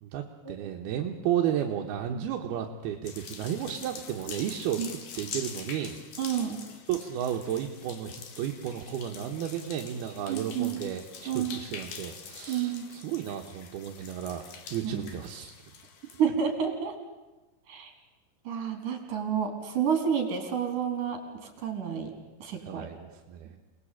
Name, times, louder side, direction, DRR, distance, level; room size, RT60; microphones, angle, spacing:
voice 1, 0.0-4.8 5.2-6.0 6.9-14.5 14.7-15.5 22.7-23.6, right 10 dB, 70° right, 2 dB, 2.9 m, -33 dB
sound 1, 3.0-16.3, left 6 dB, 55° left, 3.3 m, -44 dB
voice 2, 6.2-6.6 10.3-10.8 11.3-11.6 12.5-12.9 14.8-15.0 16.2-17.0 17.7-17.9 18.5-22.1 22.4-22.9, right 8 dB, 50° right, 5 dB, 5.3 m, -30 dB
28.0 x 20.0 x 8.7 m, 1.2 s
omnidirectional pair, 5.1 m